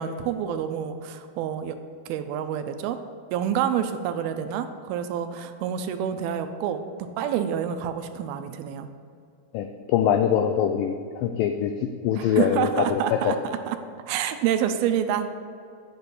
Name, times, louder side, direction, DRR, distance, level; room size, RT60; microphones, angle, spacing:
voice 1, 0.0-1.8 2.1-3.0 3.3-6.8 7.2-8.9 12.2-13.8 14.1-15.3, right 9 dB, 80° right, 8 dB, 2.4 m, -28 dB
voice 2, 9.5-11.7 12.0-13.0 13.3-13.4, left 9 dB, 90° left, 6 dB, 1.9 m, -23 dB
7.8 x 6.8 x 8.2 m, 2.3 s
omnidirectional pair, 4.6 m